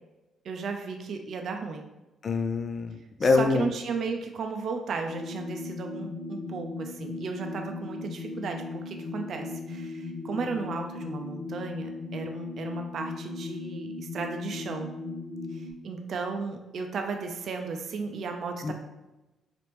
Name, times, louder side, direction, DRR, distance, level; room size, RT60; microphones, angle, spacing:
voice 1, 0.4-1.9 3.2-14.9 15.5-18.7, right 4 dB, 60° right, 4 dB, 0.5 m, -35 dB
voice 2, 2.2-3.7 18.6-18.7, left 4 dB, 40° left, 7 dB, 0.5 m, -25 dB
sound 1, 5.1-15.7, left 3 dB, 60° left, 1.1 m, -37 dB
4.0 x 3.0 x 3.3 m, 1.0 s
cardioid pair, 90°, 0 cm